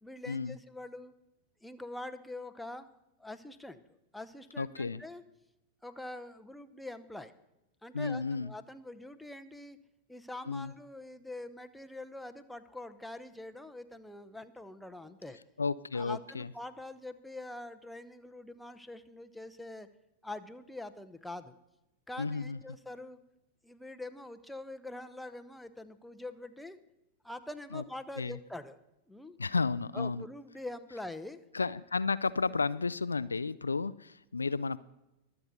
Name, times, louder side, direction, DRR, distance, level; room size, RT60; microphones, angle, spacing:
voice 1, 0.0-1.1 1.6-2.9 3.2-3.8 4.1-5.2 5.8-7.3 7.8-9.8 10.1-15.4 15.9-19.9 20.2-21.6 22.1-23.2 23.6-26.8 27.2-28.8 29.1-29.4 29.9-31.4, left 2 dB, 5° left, 9 dB, 0.8 m, -44 dB
voice 2, 4.6-5.0 7.9-8.5 10.5-10.7 15.6-16.5 22.2-22.6 27.7-27.8 28.2-28.4 29.4-30.3 31.5-34.8, left 4 dB, 75° left, 16 dB, 0.3 m, -32 dB
23.0 x 7.9 x 4.1 m, 0.92 s
figure-of-eight pair, 90°, 0 cm